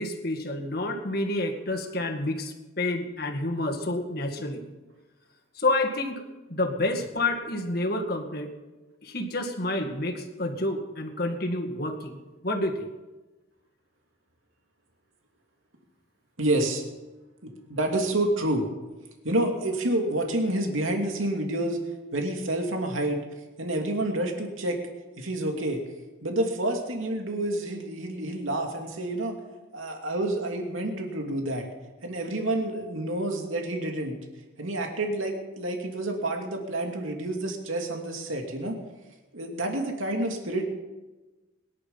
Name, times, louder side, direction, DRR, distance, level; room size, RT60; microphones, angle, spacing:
voice 1, 0.0-4.6 5.6-6.2 6.5-8.5 9.0-12.2 12.4-12.9, left 2 dB, 50° left, 3 dB, 2.0 m, -29 dB
voice 2, 16.4-16.8 17.4-18.7 19.2-21.8 22.1-23.2 23.6-24.8 25.2-25.8 26.2-29.3 29.7-31.6 32.0-34.2 34.6-38.7 39.3-40.6, right 1 dB, 85° right, 2 dB, 2.6 m, -28 dB
22.0 x 11.0 x 5.6 m, 1.2 s
head